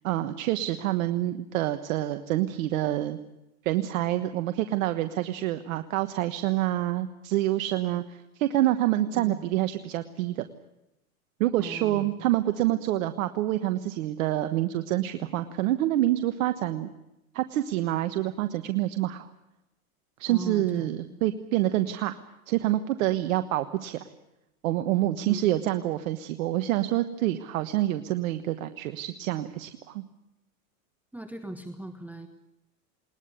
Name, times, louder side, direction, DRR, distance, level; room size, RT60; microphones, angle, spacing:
voice 1, 0.0-3.2 3.6-10.4 11.4-16.9 17.3-19.3 20.2-22.2 22.5-24.0 24.6-30.0, right 14 dB, 65° right, 10 dB, 1.3 m, -27 dB
voice 2, 9.1-9.4 11.6-12.3 20.3-21.2 25.2-25.4 31.1-32.3, right 1 dB, 5° right, 7 dB, 1.4 m, -39 dB
20.5 x 20.0 x 8.2 m, 0.92 s
hypercardioid pair, 120°, 43 cm